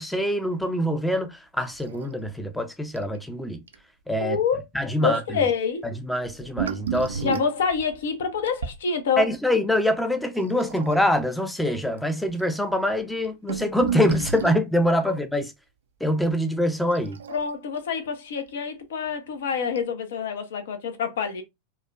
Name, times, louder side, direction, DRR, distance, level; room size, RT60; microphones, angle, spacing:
voice 1, 0.0-3.6 4.1-4.4 4.7-5.4 6.1-7.4 9.2-15.5 16.0-17.2, left 1 dB, 5° left, 0.5 m, -24 dB
sound 1, 1.7-2.3 2.6-2.7 3.0-3.2 3.7-3.8 6.2-8.8 10.5-11.2 12.0-12.1 12.3-12.4 13.0-14.7 16.9-17.8 19.1-19.2 19.8-19.9, right 7 dB, 65° right, 0.4 m, -32 dB
voice 2, 4.2-5.9 7.2-9.3 17.3-21.4, left 6 dB, 60° left, 0.7 m, -27 dB
4.6 x 2.2 x 2.3 m
figure-of-eight pair, 90°, 0 cm